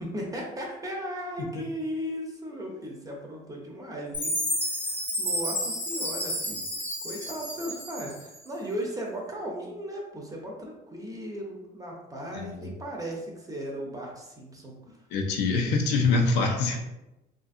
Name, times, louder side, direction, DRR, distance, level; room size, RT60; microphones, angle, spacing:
voice 1, 0.0-6.6 7.0-15.0, equal, 20° right, -1 dB, 0.6 m, -36 dB
Chime, 4.1-8.4, equal, 10° left, 0.9 m, -31 dB
voice 2, 12.3-12.7 15.1-16.8, left 3 dB, 90° left, 3 dB, 0.5 m, -25 dB
2.7 x 2.5 x 2.5 m, 0.96 s
cardioid pair, 110°, 17 cm